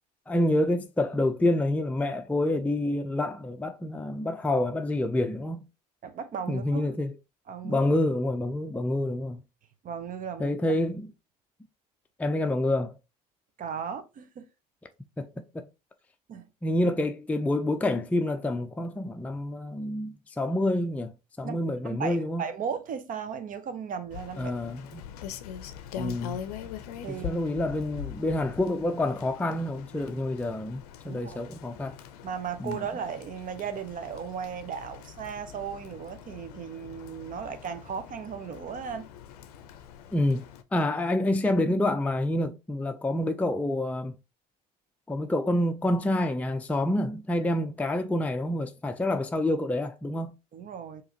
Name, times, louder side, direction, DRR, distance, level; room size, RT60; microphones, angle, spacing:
voice 1, 0.3-5.6 6.5-7.1 7.6-9.4 10.4-11.1 12.2-13.0 15.2-15.3 15.5-15.6 16.6-21.1 21.4-22.4 24.4-25.0 26.0-26.4 27.1-32.0 32.6-32.8 40.1-40.5 40.7-44.1 45.1-50.3, left 1 dB, 5° left, 0.5 m, -27 dB
voice 2, 6.0-7.0 7.5-7.9 9.8-10.5 13.6-14.5 16.3-16.5 21.4-21.6 21.8-24.5 27.0-27.4 31.1-31.4 32.2-39.1 50.5-51.0, right 7 dB, 45° right, 0.7 m, -36 dB
Rain, 24.1-40.6, left 9 dB, 80° left, 0.5 m, -43 dB
4.8 x 3.0 x 2.8 m
hypercardioid pair, 65°, 20 cm